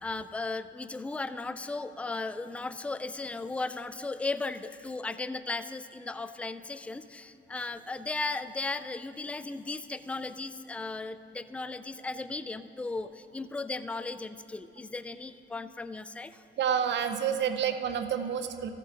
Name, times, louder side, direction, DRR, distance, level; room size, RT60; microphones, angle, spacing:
voice 1, 0.0-16.3, left 3 dB, 5° left, 12 dB, 0.3 m, -36 dB
voice 2, 16.6-18.7, right 8 dB, 65° right, 9 dB, 0.6 m, -29 dB
14.5 x 7.5 x 3.7 m, 2.8 s
cardioid pair, 90°, 20 cm